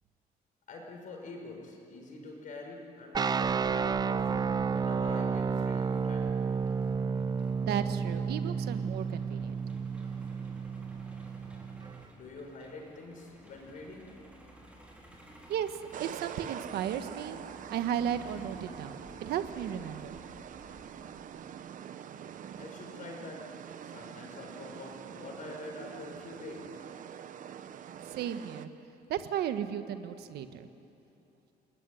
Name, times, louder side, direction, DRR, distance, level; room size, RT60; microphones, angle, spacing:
voice 1, 0.7-6.3 12.1-14.1 22.6-23.4 23.8-26.8, left 2 dB, 55° left, 1 dB, 5.8 m, -45 dB
sound 1, 3.1-12.0, right 5 dB, 25° right, 0.5 m, -31 dB
Truck, 3.4-21.2, equal, 5° right, 4.2 m, -53 dB
voice 2, 7.6-9.6 15.5-17.4 17.7-20.2 28.1-28.7 29.1-30.7, right 9 dB, 85° right, 9 dB, 1.4 m, -34 dB
sound 2, 15.9-28.7, right 9 dB, 55° right, 1.0 m, -45 dB
28.5 x 19.5 x 10.0 m, 2.9 s
cardioid pair, 135°, 16 cm